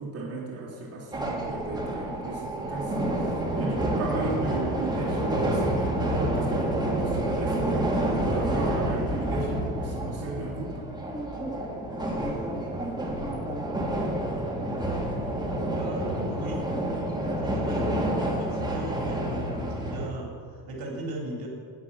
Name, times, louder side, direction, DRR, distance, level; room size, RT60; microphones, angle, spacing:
voice 1, 0.0-8.0 8.3-10.8, right 3 dB, 35° right, -6 dB, 3.4 m, -35 dB
sound 1, 1.1-20.1, right 1 dB, 10° right, 2.4 m, -28 dB
voice 2, 15.7-16.6 17.3-18.1 18.4-21.5, right 1 dB, 50° right, -1 dB, 3.8 m, -37 dB
10.5 x 10.0 x 7.2 m, 2.2 s
supercardioid pair, 105°, 44 cm